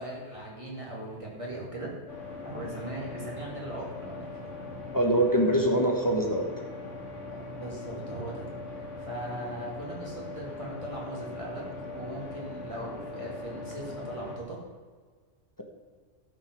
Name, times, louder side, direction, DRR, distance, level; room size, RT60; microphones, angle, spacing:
voice 1, 0.0-1.9 2.4-4.6 7.3-8.4 8.7-14.6, right 1 dB, 25° right, -4 dB, 2.5 m, -39 dB
sound 1, 2.1-14.4, left 3 dB, 80° left, 2.1 m, -40 dB
voice 2, 4.9-6.5, right 1 dB, 15° left, 1 dB, 1.2 m, -23 dB
12.5 x 5.4 x 6.2 m, 1.5 s
omnidirectional pair, 1.3 m